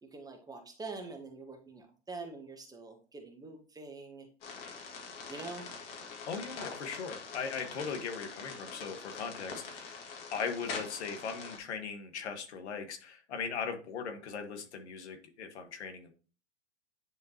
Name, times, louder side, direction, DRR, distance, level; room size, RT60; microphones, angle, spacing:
voice 1, 0.0-4.3 5.3-5.7, right 3 dB, 10° right, 2 dB, 1.5 m, -45 dB
sound 1, 4.4-11.6, left 5 dB, 55° left, 2.3 m, -44 dB
voice 2, 6.3-10.0 10.3-16.1, left 6 dB, 70° left, 6 dB, 1.7 m, -39 dB
10.0 x 3.8 x 3.0 m, 0.36 s
hypercardioid pair, 115°, 35 cm